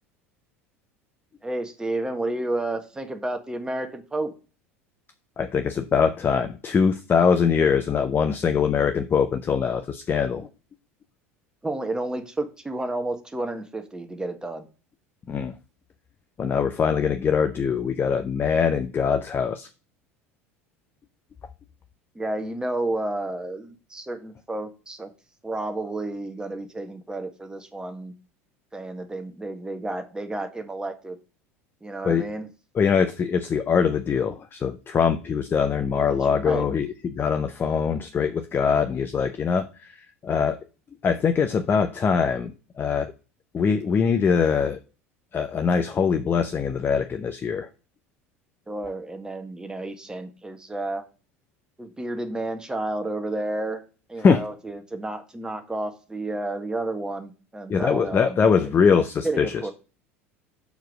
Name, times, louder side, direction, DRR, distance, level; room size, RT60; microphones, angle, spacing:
voice 1, 1.4-4.3 11.6-14.7 22.1-25.1 25.4-28.1 28.7-31.2 31.8-32.5 36.1-36.7 48.7-51.0 51.8-53.8 54.1-58.7 59.2-59.7, right 2 dB, 10° right, 1.5 m, -31 dB
voice 2, 5.4-10.5 15.3-15.5 16.4-19.7 32.0-32.3 32.7-40.6 41.0-43.1 43.5-44.8 45.3-47.7 54.2-54.4 57.7-59.7, left 6 dB, 30° left, 0.7 m, -23 dB
7.0 x 4.6 x 6.2 m
figure-of-eight pair, 75°, 7 cm